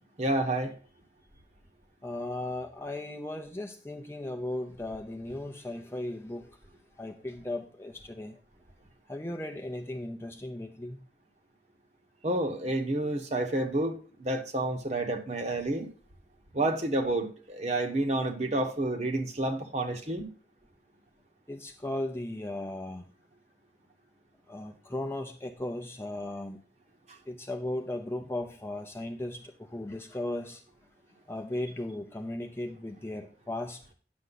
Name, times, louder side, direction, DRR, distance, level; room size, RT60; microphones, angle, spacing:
voice 1, 0.2-0.7 12.2-15.9 16.5-20.3, right 1 dB, 40° right, 3 dB, 1.1 m, -29 dB
voice 2, 2.0-6.6 7.0-8.4 9.1-11.0 21.5-23.1 24.5-26.6 27.3-30.6 31.3-33.8, left 1 dB, 15° left, 3 dB, 0.6 m, -36 dB
9.5 x 6.5 x 4.0 m, 0.41 s
head